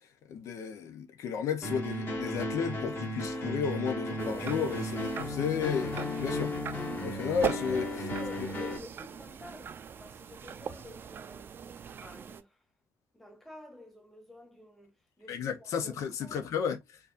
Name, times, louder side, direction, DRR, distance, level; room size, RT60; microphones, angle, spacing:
voice 1, 0.3-6.6 7.0-7.9 15.3-17.0, left 7 dB, 80° left, 0.7 m, -33 dB
sound 1, 1.6-8.8, left 1 dB, 40° left, 1.7 m, -35 dB
sound 2, 4.2-12.4, right 7 dB, 40° right, 0.4 m, -40 dB
voice 2, 7.7-11.5 12.0-12.6 13.1-15.4 15.8-15.9 16.2-16.5, left 1 dB, 5° left, 1.1 m, -49 dB
4.5 x 2.6 x 2.5 m
cardioid pair, 140°, 5 cm